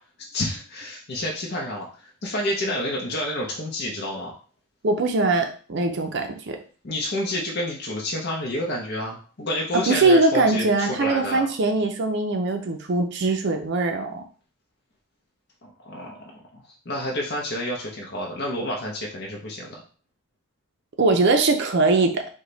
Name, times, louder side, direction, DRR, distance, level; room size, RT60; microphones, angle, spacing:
voice 1, 0.3-4.3 6.8-11.5 15.6-16.1 16.5-19.8, left 1 dB, 50° left, -2 dB, 0.7 m, -29 dB
voice 2, 4.8-6.6 9.7-14.2 21.0-22.3, right 3 dB, 50° right, 5 dB, 0.5 m, -21 dB
4.9 x 2.2 x 3.8 m, 0.40 s
head